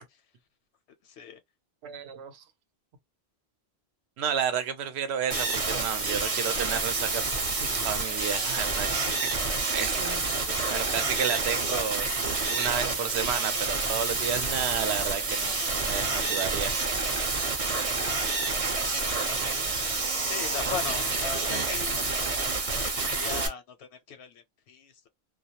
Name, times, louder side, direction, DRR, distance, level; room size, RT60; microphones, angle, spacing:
voice 1, 1.0-1.4 10.4-11.0 11.7-11.9 17.9-18.5 18.9-19.0 20.2-25.1, left 7 dB, 85° left, 0.8 m, -40 dB
voice 2, 1.8-2.4 4.2-9.1 9.4-9.5 9.7-10.4 10.7-12.1 12.5-15.5 15.8-16.7, right 8 dB, 85° right, 0.9 m, -32 dB
sound 1, 5.3-23.5, right 3 dB, 40° right, 0.6 m, -28 dB
2.2 x 2.0 x 2.7 m
omnidirectional pair, 1.1 m